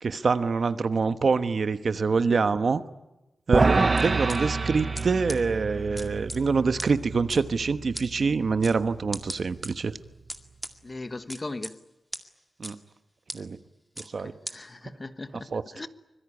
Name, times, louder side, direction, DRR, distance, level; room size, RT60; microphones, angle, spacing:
voice 1, 0.0-2.8 3.5-9.9 12.6-12.8 13.3-13.6 14.1-14.3 14.9-15.0 15.5-15.6, right 4 dB, 55° right, 1.2 m, -25 dB
sound 1, 3.5-9.9, right 3 dB, 35° right, 1.0 m, -28 dB
sound 2, 4.0-4.4 4.9-5.0 5.3-5.4 6.0-6.4 6.8-6.9 7.3-7.4 7.9-8.1 8.6-8.7 9.1-9.7 10.3-10.7 11.3-11.7 12.1-12.2 12.6-12.7 13.3-13.4 14.0-14.1 14.5-14.6, equal, 5° right, 2.1 m, -36 dB
voice 2, 10.8-11.8 14.0-15.9, left 2 dB, 30° left, 1.2 m, -39 dB
25.0 x 22.5 x 9.9 m
wide cardioid pair, 125°, 0 cm